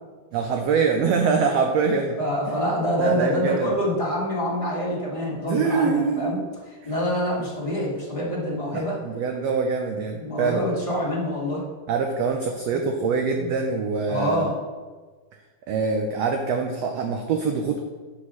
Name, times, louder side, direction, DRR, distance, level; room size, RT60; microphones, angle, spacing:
voice 1, 0.3-2.2 3.0-3.7 5.4-6.5 6.8-6.9 8.7-10.7 11.9-14.5 15.7-17.8, right 5 dB, 80° right, 4 dB, 1.5 m, -24 dB
voice 2, 2.2-6.4 6.8-9.0 10.2-11.6 12.7-12.8 13.4-13.5 14.1-14.5, equal, 15° left, -6 dB, 1.2 m, -26 dB
8.3 x 5.1 x 6.3 m, 1.4 s
omnidirectional pair, 3.7 m